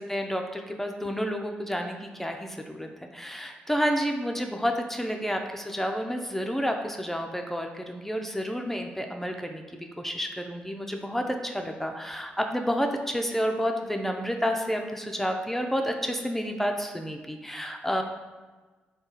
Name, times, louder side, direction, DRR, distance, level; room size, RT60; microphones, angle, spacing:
voice 1, 0.0-9.6 10.0-18.0, equal, 5° left, 3 dB, 0.4 m, -30 dB
3.6 x 2.3 x 3.9 m, 1.3 s
supercardioid pair, 45°, 4 cm